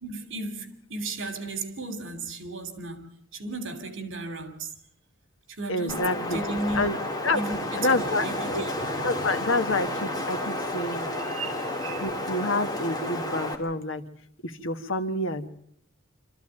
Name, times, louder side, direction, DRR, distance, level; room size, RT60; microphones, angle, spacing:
voice 1, 0.0-4.7 5.6-7.0 7.3-8.7 11.2-12.1, right 2 dB, 65° right, 2.9 m, -35 dB
voice 2, 5.7-6.4 6.7-6.9 7.2-7.4 7.8-8.6 9.0-11.1 12.0-14.0 14.4-15.5, left 2 dB, 70° left, 1.5 m, -28 dB
Wind, 5.9-13.5, left 1 dB, 20° left, 2.6 m, -31 dB
26.5 x 14.0 x 8.8 m
head